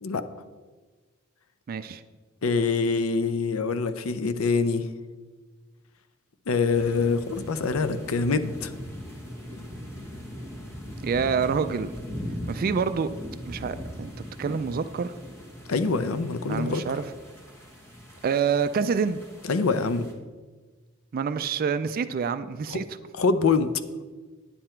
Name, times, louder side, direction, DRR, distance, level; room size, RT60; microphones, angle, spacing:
voice 1, 1.7-2.0 11.0-11.9 12.5-13.1 13.5-15.1 16.5-17.0 18.2-19.2 21.1-22.8, right 6 dB, 45° right, 12 dB, 0.3 m, -27 dB
voice 2, 2.4-4.9 6.5-8.7 15.7-16.8 19.5-20.1 22.7-22.8 23.1-23.7, left 4 dB, 75° left, 11 dB, 0.6 m, -25 dB
sound 1, 6.7-20.1, equal, 15° left, 1.4 m, -40 dB
10.0 x 7.8 x 4.4 m, 1.4 s
head